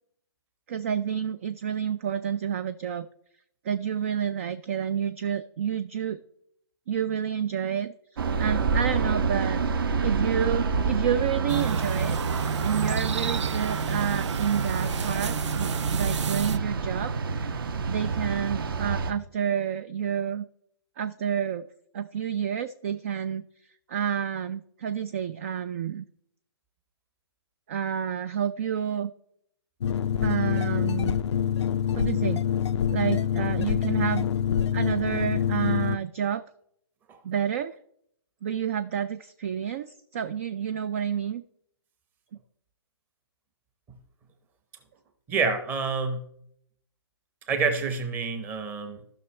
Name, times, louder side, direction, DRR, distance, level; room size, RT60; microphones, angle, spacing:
voice 1, 0.7-3.1 3.6-6.2 6.9-9.6 10.0-17.1 17.8-20.5 21.0-21.7 21.9-23.4 23.9-26.0 27.7-29.1 30.2-31.2 31.9-32.4 32.9-34.3 34.7-36.4 37.2-37.8 38.4-41.4, right 8 dB, 30° right, 13 dB, 0.3 m, -29 dB
sound 1, 8.2-19.1, right 4 dB, 50° right, 1.0 m, -28 dB
sound 2, 11.5-16.6, right 6 dB, 85° right, 0.5 m, -30 dB
sound 3, 29.8-36.0, left 9 dB, 75° left, 0.4 m, -26 dB
voice 2, 45.3-46.3 47.5-49.0, right 4 dB, 15° right, 8 dB, 0.8 m, -27 dB
15.5 x 6.0 x 3.2 m, 0.70 s
hypercardioid pair, 160°, 15 cm